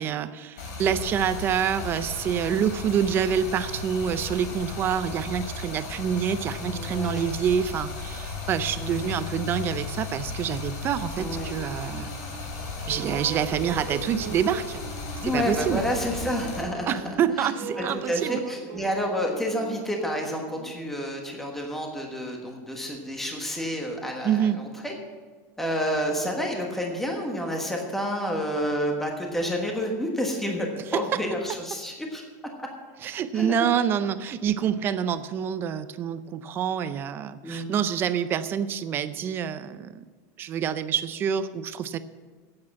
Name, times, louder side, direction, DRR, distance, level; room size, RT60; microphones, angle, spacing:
voice 1, 0.0-12.1 12.9-14.8 15.2-15.8 16.9-18.4 24.2-24.6 30.9-31.2 33.0-40.0 40.4-42.0, right 8 dB, 25° right, 13 dB, 0.5 m, -27 dB
Stream, 0.6-16.6, left 4 dB, 75° left, 3.5 m, -35 dB
voice 2, 6.5-7.3 8.7-9.2 11.2-11.5 15.2-17.0 17.4-17.5 17.8-24.9 25.6-32.2 33.3-33.7 37.4-37.7, equal, 5° left, 1 dB, 1.2 m, -29 dB
sound 1, 11.2-12.5 12.8-17.2 17.5-21.3, right 4 dB, 50° right, 1.3 m, -41 dB
10.0 x 8.7 x 7.6 m, 1.4 s
supercardioid pair, 170°, 9 cm